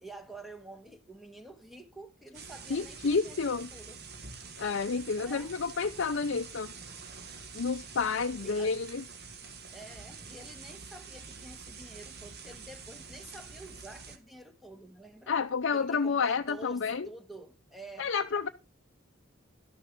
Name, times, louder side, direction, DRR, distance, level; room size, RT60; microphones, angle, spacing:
voice 1, 0.0-4.0 5.2-5.5 8.4-8.8 9.7-15.3 15.7-18.1, right 2 dB, ahead, 1.2 m, -48 dB
sound 1, 2.3-14.2, right 5 dB, 50° right, 1.4 m, -47 dB
voice 2, 2.7-3.7 4.6-6.7 7.5-9.0 15.3-17.1 18.0-18.5, left 5 dB, 60° left, 0.6 m, -30 dB
12.0 x 6.5 x 5.0 m
head